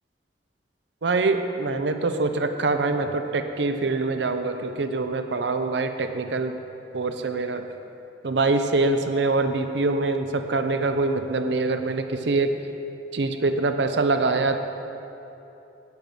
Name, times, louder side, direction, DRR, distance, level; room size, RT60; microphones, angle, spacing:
voice 1, 1.0-6.6 6.9-7.7 8.2-12.5 13.1-14.6, right 3 dB, 75° right, 8 dB, 0.6 m, -24 dB
8.9 x 8.6 x 6.0 m, 2.9 s
head